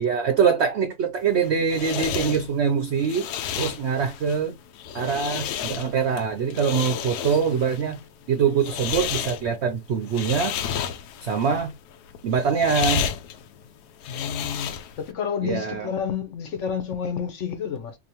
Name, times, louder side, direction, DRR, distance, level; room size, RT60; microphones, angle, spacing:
voice 1, 0.0-3.3 3.6-4.6 4.9-8.0 8.3-10.6 11.2-11.7 12.2-13.1 15.4-15.9, right 6 dB, 60° right, 0.7 m, -24 dB
sound 1, 1.2-15.1, left 9 dB, 80° left, 1.1 m, -32 dB
voice 2, 14.1-14.7 15.0-18.0, left 7 dB, 55° left, 1.1 m, -29 dB
4.2 x 2.9 x 2.9 m
omnidirectional pair, 1.7 m